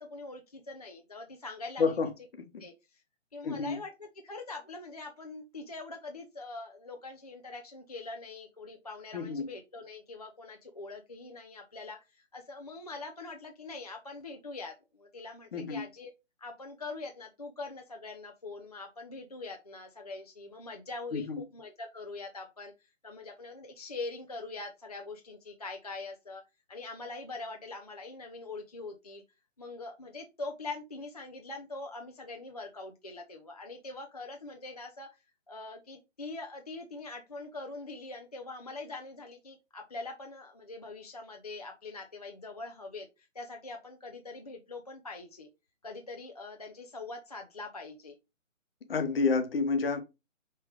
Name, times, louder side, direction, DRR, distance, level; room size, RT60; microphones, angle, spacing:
voice 1, 0.0-2.0 2.6-3.0 3.3-16.1 16.4-26.4 26.7-29.2 29.6-35.1 35.5-45.5 45.8-48.1, left 3 dB, 35° left, 0.4 m, -43 dB
voice 2, 1.8-2.1 2.5-2.6 3.4-3.8 9.1-9.5 15.5-15.8 21.1-21.4 48.9-50.0, left 4 dB, 50° left, 1.0 m, -29 dB
4.9 x 3.3 x 3.1 m
figure-of-eight pair, 150°, 37 cm